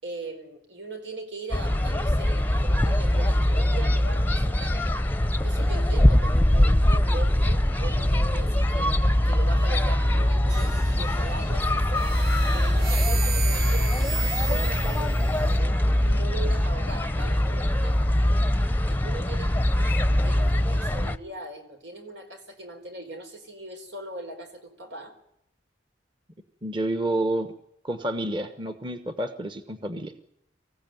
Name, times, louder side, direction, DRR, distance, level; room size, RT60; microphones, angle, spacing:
voice 1, 0.0-4.9 5.3-9.0 9.2-12.2 12.5-15.8 16.0-18.2 18.9-25.1, right 2 dB, 80° right, 6 dB, 4.4 m, -40 dB
sound 1, 1.5-21.2, left 1 dB, 10° left, 0.8 m, -22 dB
sound 2, 10.5-11.4 11.9-15.6, right 6 dB, 50° right, 3.4 m, -35 dB
voice 2, 26.6-27.5 27.8-30.1, right 1 dB, 25° right, 9 dB, 1.3 m, -29 dB
24.5 x 15.5 x 9.3 m, 0.79 s
head